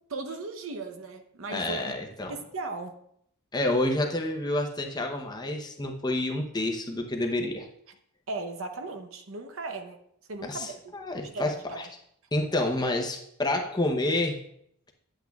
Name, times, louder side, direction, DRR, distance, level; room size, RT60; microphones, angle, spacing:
voice 1, 0.1-1.9 2.3-2.9 8.3-10.0 10.3-11.9, right 3 dB, 65° right, 6 dB, 0.8 m, -37 dB
voice 2, 1.5-2.4 3.5-7.7 10.4-11.9 12.3-14.4, left 1 dB, 20° left, 2 dB, 0.7 m, -29 dB
10.0 x 8.2 x 2.3 m, 0.72 s
head